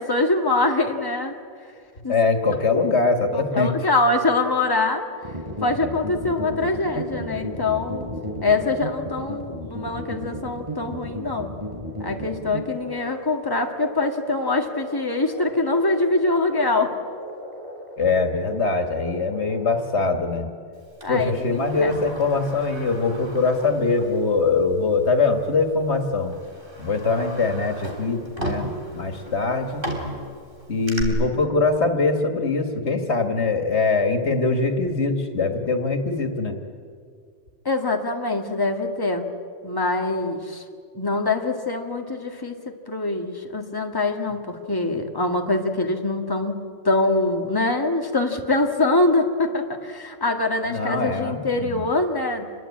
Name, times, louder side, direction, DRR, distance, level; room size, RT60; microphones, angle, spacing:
voice 1, 0.0-1.3 2.0-2.2 3.3-5.0 5.6-8.1 8.4-11.5 12.0-16.9 21.0-21.9 37.7-39.3 39.6-40.6 40.9-42.6 42.9-52.5, left 2 dB, 20° left, 3 dB, 2.0 m, -24 dB
voice 2, 2.1-3.7 18.0-20.5 21.1-26.3 26.8-29.8 30.7-36.6 50.7-51.8, left 3 dB, 85° left, 5 dB, 2.3 m, -22 dB
sound 1, 5.2-20.0, right 1 dB, 30° right, 6.0 m, -34 dB
Sliding door, 21.0-24.2 24.6-24.7 25.6-25.8 26.3-31.0, right 1 dB, 55° right, 3.7 m, -36 dB
27.5 x 21.5 x 8.6 m, 2.2 s
omnidirectional pair, 1.1 m